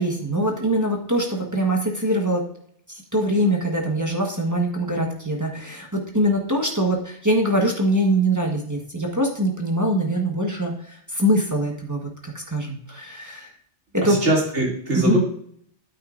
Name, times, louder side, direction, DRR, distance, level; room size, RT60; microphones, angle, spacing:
voice 1, 0.0-2.4 2.9-13.5 13.9-14.2 15.0-15.2, right 1 dB, 15° right, -1 dB, 1.2 m, -23 dB
voice 2, 14.0-15.2, right 1 dB, 80° right, -3 dB, 2.9 m, -22 dB
9.3 x 8.6 x 2.5 m, 0.62 s
omnidirectional pair, 1.2 m